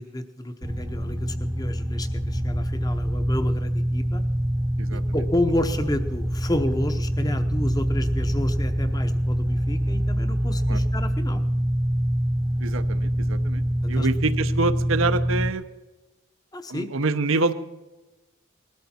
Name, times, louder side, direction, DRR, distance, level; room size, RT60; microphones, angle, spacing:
voice 1, 0.0-4.2 4.9-11.4 14.0-14.1 16.5-16.9, left 1 dB, 20° left, 9 dB, 0.9 m, -30 dB
sound 1, 0.6-15.5, equal, 15° right, 0.9 m, -25 dB
voice 2, 12.6-15.7 16.7-17.5, right 3 dB, 75° right, 10 dB, 0.9 m, -26 dB
20.0 x 13.0 x 4.3 m, 1.1 s
head